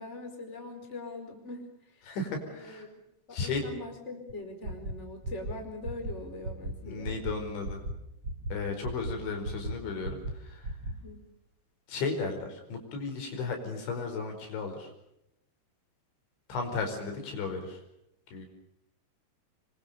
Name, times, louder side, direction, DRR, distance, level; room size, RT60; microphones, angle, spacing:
voice 1, 0.0-1.7 1.9-2.1 2.5-2.9 3.3-7.2 10.9-11.2, left 2 dB, 15° left, 4 dB, 4.7 m, -42 dB
voice 2, 2.0-2.9 3.3-3.6 6.8-7.8 8.5-10.8 11.9-14.9 16.5-17.8 18.3-18.5, left 4 dB, 75° left, 4 dB, 7.2 m, -35 dB
sound 1, 4.3-4.4 4.6-4.9 5.2-5.5 5.8-6.1 6.4-6.7 7.0-7.3 7.6-7.9 8.2-8.5 8.8-9.1 9.4-9.7 10.0-10.3 10.6-10.9, right 1 dB, 30° right, 3.7 m, -34 dB
26.5 x 24.0 x 6.7 m, 0.81 s
omnidirectional pair, 5.3 m